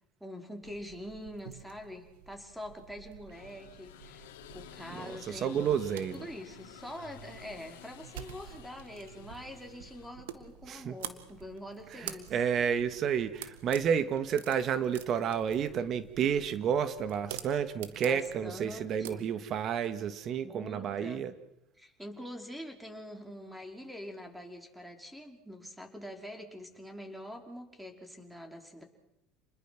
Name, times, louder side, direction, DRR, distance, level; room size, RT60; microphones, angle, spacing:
voice 1, 0.2-5.9 6.1-12.4 18.0-19.2 20.4-21.3 21.8-28.8, left 1 dB, 5° right, 4 dB, 5.2 m, -45 dB
sound 1, 0.6-19.1, right 10 dB, 85° right, 2.0 m, -49 dB
sound 2, 3.3-10.1, left 11 dB, 85° left, 2.6 m, -52 dB
voice 2, 4.9-6.2 10.7-11.0 11.9-21.3, right 8 dB, 50° right, 11 dB, 2.0 m, -31 dB
29.0 x 21.0 x 6.2 m, 0.85 s
supercardioid pair, 90°, 0 cm